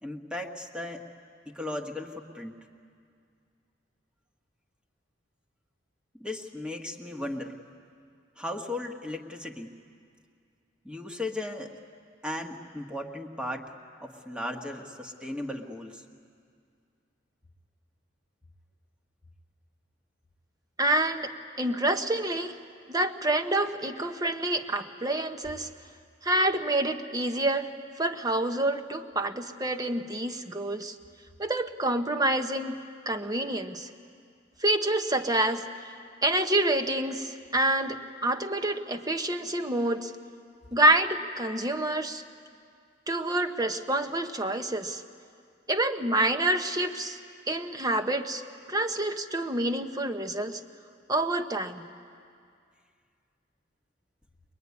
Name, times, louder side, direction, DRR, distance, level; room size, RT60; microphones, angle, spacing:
voice 1, 0.0-1.1 1.4-2.6 6.1-7.6 8.4-9.7 10.8-11.7 12.2-13.7 14.0-16.0, left 1 dB, 5° right, 3 dB, 1.5 m, -36 dB
voice 2, 20.8-22.6 22.9-25.7 26.2-31.0 31.4-32.8 33.1-33.9 34.6-35.7 36.2-40.1 40.7-42.2 43.1-45.0 45.7-47.2 47.5-48.4 48.7-50.6 51.1-51.8, right 1 dB, 20° right, 7 dB, 1.0 m, -27 dB
23.0 x 22.0 x 9.6 m, 2.2 s
head